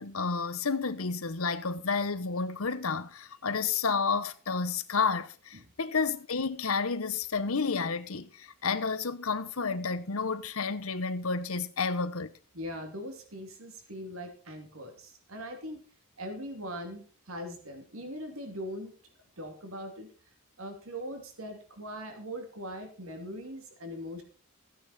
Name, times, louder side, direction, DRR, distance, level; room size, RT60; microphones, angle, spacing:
voice 1, 0.0-12.3, left 5 dB, 75° left, 1.0 m, -31 dB
voice 2, 12.5-15.8 16.2-18.9 19.4-20.1 20.6-24.2, equal, 70° right, 2.7 m, -41 dB
15.0 x 9.5 x 4.2 m
head